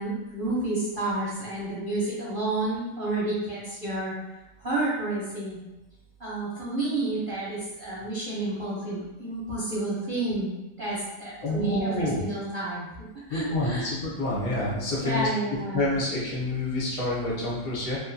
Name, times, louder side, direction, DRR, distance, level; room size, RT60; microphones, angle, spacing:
voice 1, 0.0-4.1 4.6-5.6 6.2-10.5 10.8-13.9 15.0-15.9, right 2 dB, 60° right, -9 dB, 0.5 m, -30 dB
voice 2, 11.4-12.2 13.3-15.3 15.7-18.0, left 1 dB, 65° left, -5 dB, 1.1 m, -28 dB
2.8 x 2.2 x 2.5 m, 1.0 s
omnidirectional pair, 1.8 m